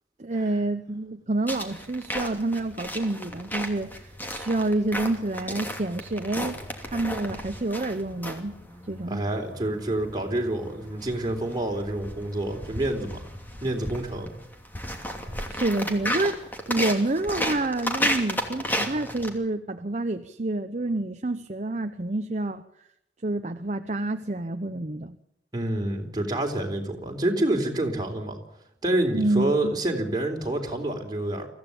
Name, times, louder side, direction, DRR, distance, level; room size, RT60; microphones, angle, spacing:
voice 1, 0.2-6.6 6.8-8.5 8.9-9.2 15.5-22.6 23.2-25.2 29.1-29.7, right 2 dB, 40° right, 8 dB, 0.8 m, -28 dB
sound 1, 1.5-19.3, equal, 10° left, 2.8 m, -34 dB
voice 2, 9.1-13.2 13.6-14.3 24.7-24.8 25.5-28.4 28.8-31.5, right 1 dB, 25° right, 1 dB, 3.8 m, -28 dB
24.0 x 15.5 x 8.7 m, 0.80 s
head